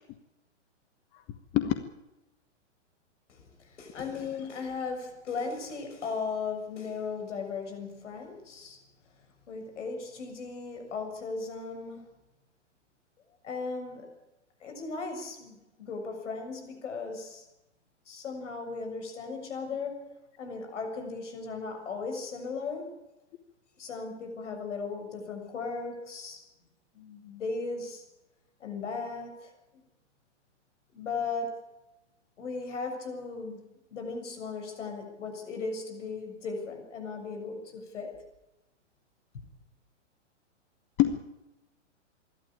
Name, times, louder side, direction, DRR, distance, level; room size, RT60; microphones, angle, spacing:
voice 1, 3.3-8.8 9.5-12.1 13.4-14.1 14.6-17.5 18.1-20.0 20.4-22.9 23.8-26.4 26.9-28.1 28.6-29.8 30.9-31.6 32.4-38.2, left 4 dB, 75° left, 4 dB, 7.1 m, -37 dB
voice 2, 4.0-4.5 41.0-41.2, left 13 dB, 30° left, 9 dB, 1.3 m, -27 dB
26.0 x 12.5 x 8.8 m, 0.97 s
hypercardioid pair, 140°, 36 cm